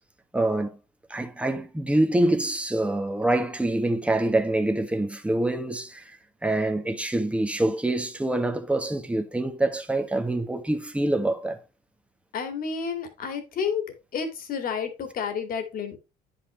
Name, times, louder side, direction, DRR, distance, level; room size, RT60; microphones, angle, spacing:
voice 1, 0.3-0.7 1.1-6.1 6.4-11.6, right 1 dB, 5° right, 1.3 m, -25 dB
voice 2, 12.3-13.8 14.1-16.0, left 6 dB, 60° left, 2.4 m, -30 dB
9.8 x 5.8 x 3.3 m
cardioid pair, 110°, 17 cm